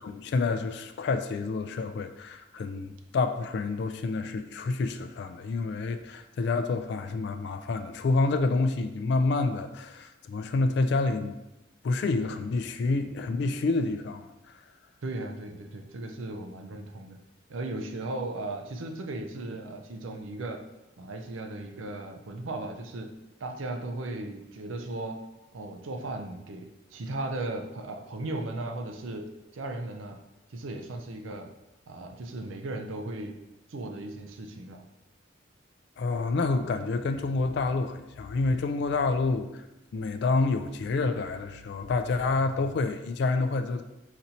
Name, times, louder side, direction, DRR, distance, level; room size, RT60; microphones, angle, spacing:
voice 1, 0.0-11.3 11.8-14.6 36.0-39.6 39.9-43.8, left 3 dB, 60° left, 8 dB, 0.3 m, -28 dB
voice 2, 15.0-17.2 17.5-20.6 21.0-23.1 23.4-25.2 25.5-29.3 29.5-30.2 30.5-31.5 31.9-33.4 33.7-34.8, right 2 dB, 85° right, 4 dB, 0.5 m, -36 dB
4.1 x 2.7 x 4.2 m, 0.97 s
head